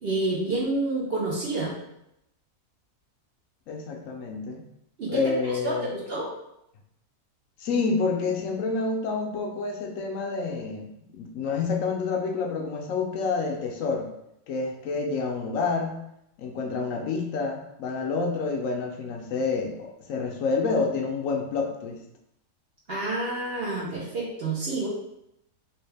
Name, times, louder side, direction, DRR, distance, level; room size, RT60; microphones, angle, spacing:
voice 1, 0.0-1.8 5.0-6.3 22.9-24.9, right 2 dB, 50° right, -5 dB, 0.8 m, -28 dB
voice 2, 3.7-4.6 5.1-5.9 7.6-14.1 14.5-16.0 16.4-22.0, left 4 dB, 70° left, 2 dB, 0.9 m, -28 dB
3.4 x 2.8 x 3.3 m, 0.81 s
omnidirectional pair, 1.6 m